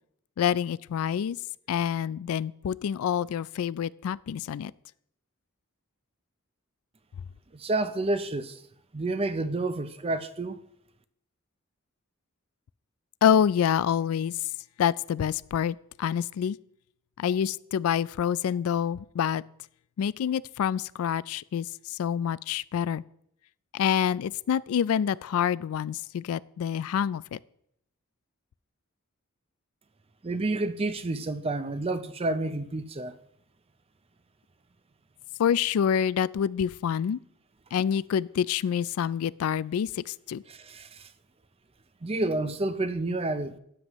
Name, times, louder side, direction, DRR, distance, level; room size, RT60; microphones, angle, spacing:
voice 1, 0.4-1.4 1.7-4.7 13.2-14.4 14.8-16.6 17.2-19.4 20.0-23.0 23.7-27.4 35.4-37.2 37.7-40.4, left 8 dB, 75° left, 0.3 m, -27 dB
voice 2, 7.5-8.6 8.9-10.6 30.2-33.1 40.5-41.1 42.0-43.6, right 2 dB, 25° right, 0.5 m, -29 dB
12.5 x 9.6 x 3.0 m
head